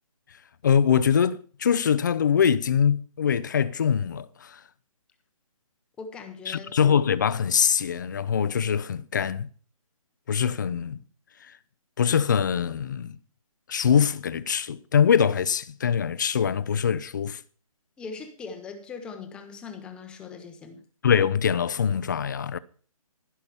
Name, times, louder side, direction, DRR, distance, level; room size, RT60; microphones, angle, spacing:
voice 1, 0.6-4.6 6.5-9.5 10.3-11.0 11.4-11.5 12.0-13.2 13.7-17.4 21.0-22.6, left 7 dB, 35° left, 0.6 m, -23 dB
voice 2, 6.0-6.7 18.0-20.8, left 5 dB, 5° left, 0.8 m, -40 dB
15.5 x 5.8 x 6.8 m
hypercardioid pair, 165°, 18 cm